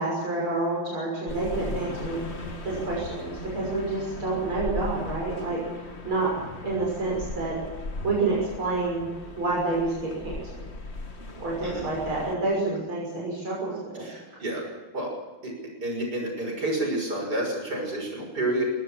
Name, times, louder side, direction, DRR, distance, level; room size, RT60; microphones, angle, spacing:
voice 1, 0.0-2.2 2.6-6.3 6.6-7.6 8.0-9.1 9.4-10.6 11.4-14.0 14.3-14.4, right 3 dB, 75° right, -4 dB, 7.1 m, -28 dB
sound 1, 1.3-12.4, left 2 dB, 30° left, 2.0 m, -38 dB
voice 2, 14.0-14.6 14.9-15.1 15.4-15.5 15.8-18.7, right 1 dB, 50° right, 2 dB, 6.7 m, -29 dB
21.5 x 18.0 x 7.4 m, 1.3 s
omnidirectional pair, 2.3 m